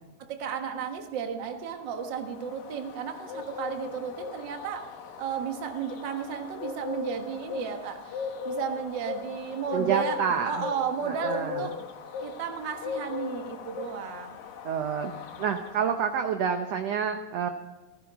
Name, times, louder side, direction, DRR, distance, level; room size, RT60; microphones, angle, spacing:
voice 1, 0.2-4.9 5.2-10.2 10.5-11.7 12.2-14.4, right 7 dB, 50° right, 5 dB, 1.3 m, -33 dB
sound 1, 1.7-16.3, left 6 dB, 65° left, 2.6 m, -38 dB
voice 2, 9.7-10.6 11.1-11.6 14.6-15.1 15.4-17.5, right 7 dB, 85° right, 6 dB, 1.4 m, -28 dB
15.5 x 15.0 x 5.1 m, 1.1 s
omnidirectional pair, 4.0 m